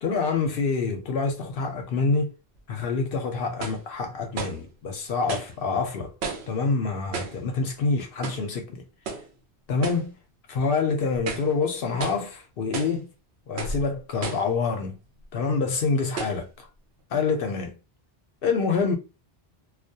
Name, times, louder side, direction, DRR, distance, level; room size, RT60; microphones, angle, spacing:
voice 1, 0.0-2.3 2.7-8.8 9.7-10.1 10.5-13.1 13.5-15.0 15.3-16.7 17.1-17.8 18.4-19.0, left 4 dB, 65° left, 0.7 m, -26 dB
sound 1, 2.6-2.7 3.6-3.9 4.3-4.7 5.3-5.5 6.2-6.6 7.1-7.4 8.2-8.5 9.0-9.3 9.8-10.1 10.5-10.6 11.1-11.5 12.0-12.3 12.7-13.0 13.6-13.8 14.2-14.5 15.2-15.3 16.2-16.4, right 4 dB, 85° right, 0.9 m, -33 dB
2.2 x 2.2 x 2.6 m
omnidirectional pair, 1.1 m